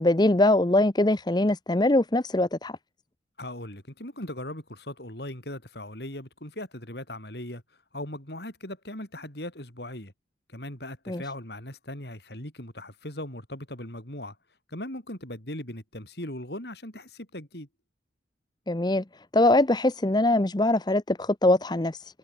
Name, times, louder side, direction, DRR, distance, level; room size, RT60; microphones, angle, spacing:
voice 1, 0.0-2.8 11.1-11.2 18.7-19.0 19.3-22.2, left 2 dB, 25° left, 0.8 m, -22 dB
voice 2, 3.4-7.6 7.9-10.1 10.5-14.4 14.7-17.7, left 1 dB, 60° left, 6.4 m, -39 dB
head